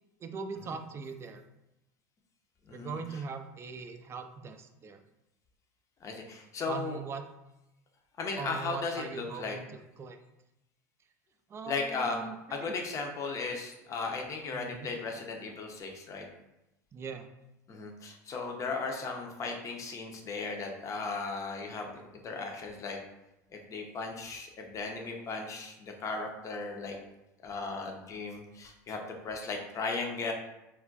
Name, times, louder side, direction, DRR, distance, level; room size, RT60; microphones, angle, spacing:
voice 1, 0.2-1.4 2.7-5.0 6.7-7.2 8.4-10.2 11.5-12.8 14.5-14.9 16.9-17.3, right 5 dB, 30° right, 7 dB, 0.3 m, -41 dB
voice 2, 2.7-3.2 6.0-7.0 8.2-9.6 11.7-12.2 12.5-16.3 17.7-23.0 23.5-27.0 27.4-30.3, left 4 dB, 35° left, 2 dB, 0.6 m, -36 dB
2.3 x 2.1 x 3.8 m, 0.92 s
hypercardioid pair, 85°, 9 cm